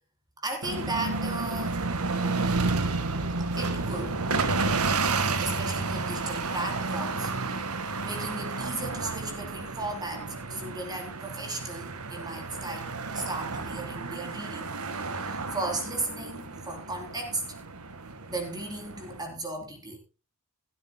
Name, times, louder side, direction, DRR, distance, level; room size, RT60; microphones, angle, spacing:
voice 1, 0.4-2.1 3.2-4.2 5.4-14.7 15.2-17.4 18.3-20.0, right 2 dB, 20° right, 4 dB, 3.8 m, -36 dB
sound 1, 0.6-19.2, right 3 dB, 80° right, 1.6 m, -31 dB
15.5 x 13.0 x 2.3 m, 0.32 s
head